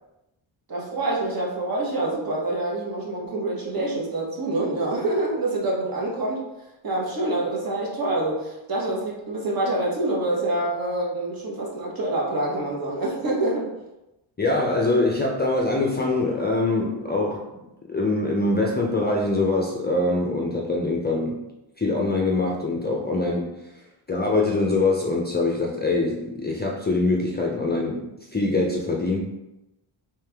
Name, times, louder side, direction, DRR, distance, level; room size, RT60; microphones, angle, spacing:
voice 1, 0.7-6.4 6.8-13.7, right 2 dB, 45° right, -3 dB, 1.3 m, -26 dB
voice 2, 14.4-17.4 17.9-21.4 21.8-23.5 24.1-29.2, left 2 dB, 20° left, -1 dB, 0.5 m, -23 dB
3.3 x 3.2 x 3.4 m, 0.94 s
wide cardioid pair, 105°, 48 cm